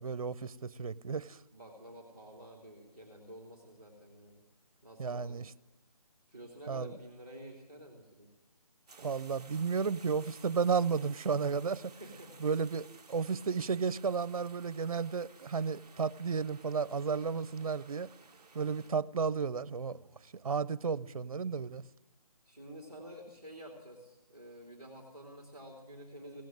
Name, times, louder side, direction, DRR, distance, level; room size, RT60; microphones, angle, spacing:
voice 1, 0.0-1.4 5.0-5.4 6.7-6.9 9.0-11.9 12.4-18.1 18.5-20.0 20.4-21.8, right 5 dB, 65° right, 0.6 m, -33 dB
voice 2, 1.5-4.4 4.8-5.5 6.3-8.3 12.0-12.5 18.5-18.8 22.5-26.4, equal, 10° left, 1.9 m, -50 dB
sound 1, 8.9-18.9, right 4 dB, 10° right, 0.7 m, -57 dB
17.0 x 7.5 x 9.1 m
hypercardioid pair, 175°, 20 cm